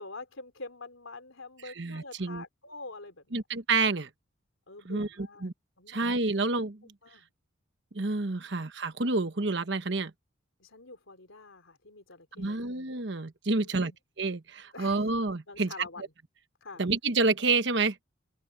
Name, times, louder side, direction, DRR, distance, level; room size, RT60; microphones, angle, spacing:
voice 1, 0.0-3.4 4.7-5.5 5.8-6.0 7.0-7.3 8.4-8.5 10.6-12.7 13.5-14.0 14.7-15.0 15.5-16.0 16.6-16.9, left 3 dB, 85° left, 3.7 m, -46 dB
voice 2, 1.8-2.4 3.3-4.1 4.8-5.5 5.9-6.8 7.9-10.1 12.4-13.9 14.2-15.7 16.8-18.0, right 3 dB, 60° right, 1.1 m, -28 dB
open air
head